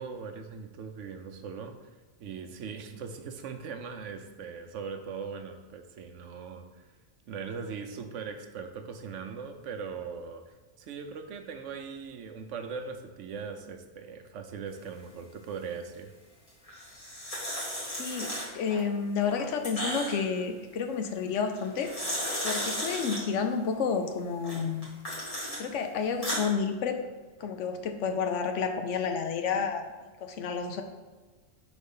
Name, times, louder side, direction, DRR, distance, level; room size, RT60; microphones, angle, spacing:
voice 1, 0.0-1.9 2.2-6.9 7.3-16.1, right 5 dB, 75° right, 6 dB, 0.9 m, -40 dB
sound 1, 16.7-18.8 19.2-20.4 21.6-23.2 24.4-25.6 26.0-26.4, equal, 25° left, 1.7 m, -34 dB
voice 2, 17.9-21.9 22.4-24.9 25.6-27.0 27.4-29.9 30.2-30.8, left 6 dB, 70° left, 6 dB, 0.9 m, -30 dB
5.2 x 4.0 x 5.5 m, 1.3 s
omnidirectional pair, 1.3 m